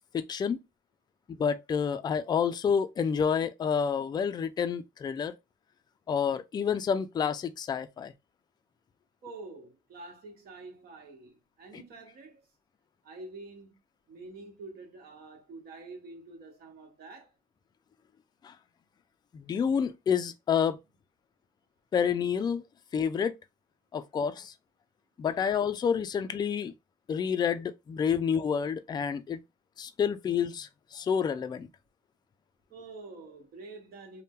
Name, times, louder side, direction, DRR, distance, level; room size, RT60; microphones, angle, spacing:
voice 1, 0.1-0.6 1.4-5.3 6.1-8.1 11.7-11.8 18.4-18.5 19.3-20.8 21.9-22.6 22.9-23.3 23.9-24.5 25.2-26.7 27.1-29.4 29.8-31.7, left 7 dB, 25° left, 0.3 m, -29 dB
voice 2, 9.2-12.4 13.0-13.8 14.1-17.3 32.7-34.2, right 3 dB, 65° right, 1.2 m, -47 dB
2.7 x 2.1 x 3.6 m
cardioid pair, 110°, 17 cm